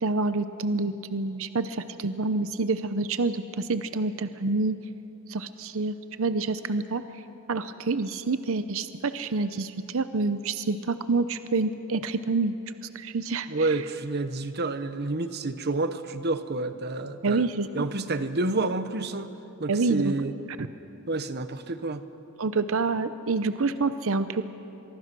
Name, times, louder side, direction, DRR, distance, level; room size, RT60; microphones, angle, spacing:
voice 1, 0.0-4.8 5.3-7.0 7.5-12.5 12.8-13.7 17.2-17.7 19.7-20.1 20.6-20.7 22.4-24.4, right 3 dB, 65° right, 11 dB, 0.7 m, -27 dB
voice 2, 13.5-17.5 17.7-19.3 19.6-20.3 21.1-22.0, right 2 dB, 50° right, 11 dB, 1.0 m, -29 dB
23.5 x 23.5 x 6.1 m, 3.0 s
head